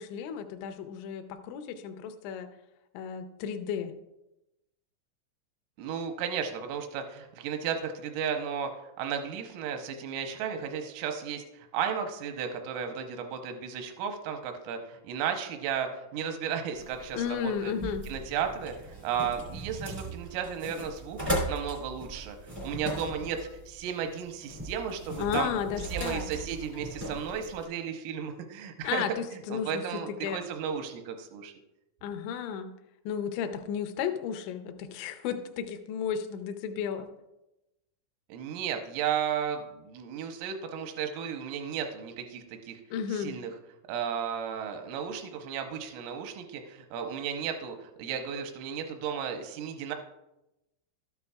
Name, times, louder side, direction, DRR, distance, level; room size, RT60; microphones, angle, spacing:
voice 1, 0.0-2.5 2.9-3.9 17.1-18.1 25.2-26.3 28.8-30.4 32.0-32.7 33.1-37.1 42.9-43.3, left 8 dB, 80° left, 8 dB, 2.7 m, -33 dB
voice 2, 5.8-8.7 9.0-17.7 18.0-21.2 21.5-22.4 22.6-23.4 23.7-25.5 25.9-29.2 29.5-31.5 38.3-42.8 43.1-43.5 43.9-50.0, right 7 dB, 85° right, 5 dB, 3.4 m, -34 dB
sound 1, 16.7-27.6, right 1 dB, 50° right, 0.4 m, -38 dB
12.5 x 9.7 x 2.3 m, 0.93 s
omnidirectional pair, 5.8 m